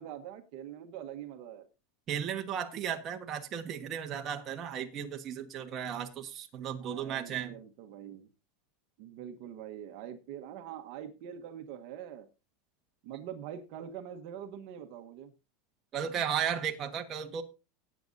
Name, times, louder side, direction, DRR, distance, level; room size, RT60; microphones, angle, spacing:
voice 1, 0.0-1.7 6.8-8.3 9.0-12.3 13.0-15.3, right 9 dB, 55° right, 7 dB, 1.2 m, -44 dB
voice 2, 2.1-7.6 15.9-17.4, right 8 dB, 30° right, 4 dB, 1.3 m, -35 dB
18.0 x 8.6 x 2.7 m, 0.29 s
supercardioid pair, 150°, 0 cm